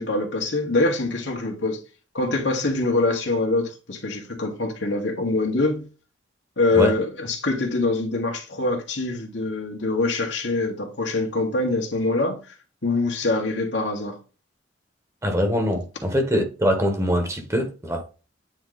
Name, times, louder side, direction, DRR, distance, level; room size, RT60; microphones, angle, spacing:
voice 1, 0.0-1.8 2.1-5.9 6.6-12.5 12.8-14.2, left 2 dB, 75° left, 1.8 m, -24 dB
voice 2, 15.2-18.1, equal, 15° right, 1.4 m, -23 dB
9.2 x 3.2 x 4.0 m
head